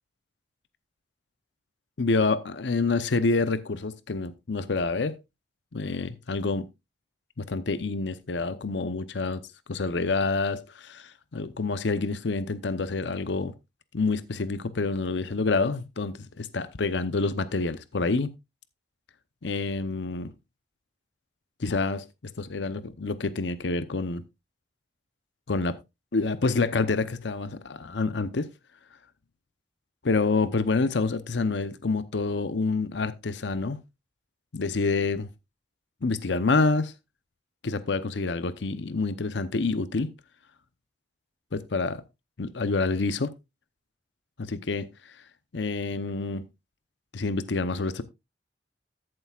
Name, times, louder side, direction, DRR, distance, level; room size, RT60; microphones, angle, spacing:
voice 1, 2.0-5.2 5.7-6.7 7.4-9.4 9.7-13.5 13.9-18.3 19.4-20.3 21.6-22.0 22.4-24.2 25.5-25.8 26.1-28.5 30.0-33.8 34.5-35.3 36.0-36.9 37.6-40.1 41.5-42.0 42.4-43.3 44.4-44.9 45.5-46.5 47.1-48.0, left 3 dB, 80° left, 0.7 m, -27 dB
14.0 x 7.8 x 2.4 m
head